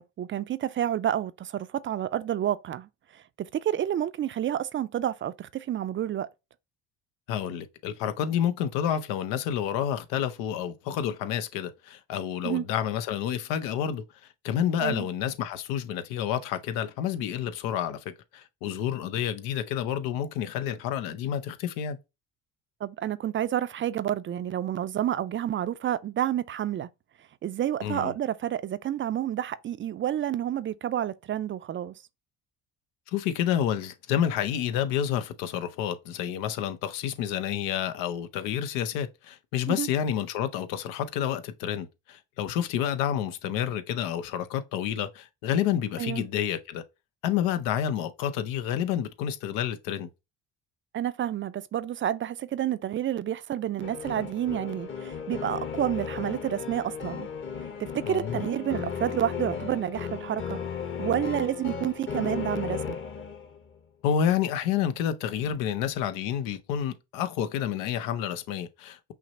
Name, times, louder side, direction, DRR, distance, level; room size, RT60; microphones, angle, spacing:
voice 1, 0.0-6.3 12.4-12.6 14.8-15.1 22.8-26.9 27.4-31.9 39.7-39.9 46.0-46.3 50.9-57.3 57.8-60.6 61.0-63.0, right 11 dB, 35° right, 0.4 m, -29 dB
voice 2, 7.3-14.0 14.4-18.0 18.3-22.0 27.8-28.1 33.1-46.8 47.2-50.1 58.1-58.4 64.0-69.1, left 9 dB, 85° left, 0.7 m, -29 dB
sound 1, 53.8-63.6, left 7 dB, 35° left, 1.1 m, -35 dB
5.9 x 2.0 x 4.1 m
supercardioid pair, 80°, 33 cm